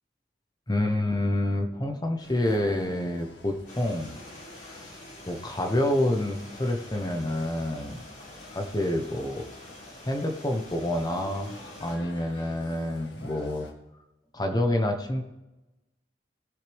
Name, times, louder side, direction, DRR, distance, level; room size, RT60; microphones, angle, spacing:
voice 1, 0.7-4.2 4.5-5.0 5.3-8.0 8.5-9.5 10.1-11.5 11.8-13.7 14.3-15.2, left 1 dB, 25° left, 4 dB, 0.9 m, -28 dB
sound 1, 2.2-13.7, left 2 dB, 80° left, 1.8 m, -49 dB
Stream, 3.7-12.0, left 1 dB, 50° left, 4.8 m, -49 dB
19.5 x 6.7 x 3.5 m, 0.98 s
head